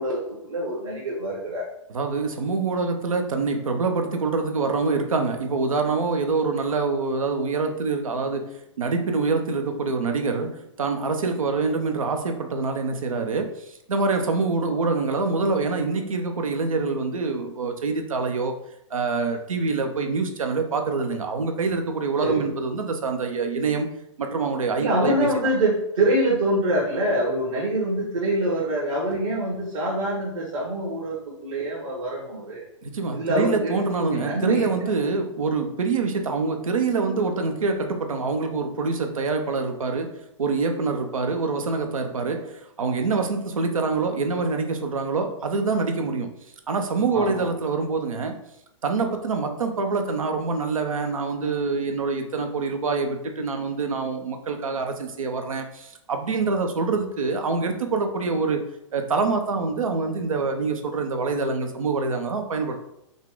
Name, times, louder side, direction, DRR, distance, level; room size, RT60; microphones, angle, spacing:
voice 1, 0.0-1.7 22.2-22.5 24.8-32.6 33.1-34.9 47.1-47.5, right 1 dB, 70° right, -5 dB, 1.5 m, -25 dB
voice 2, 1.9-18.6 18.9-23.9 24.2-25.3 32.8-40.1 40.4-46.3 46.7-48.4 48.8-58.6 58.9-62.8, right 4 dB, 85° right, 5 dB, 0.8 m, -25 dB
5.3 x 2.4 x 3.7 m, 0.80 s
hypercardioid pair, 120°, 17 cm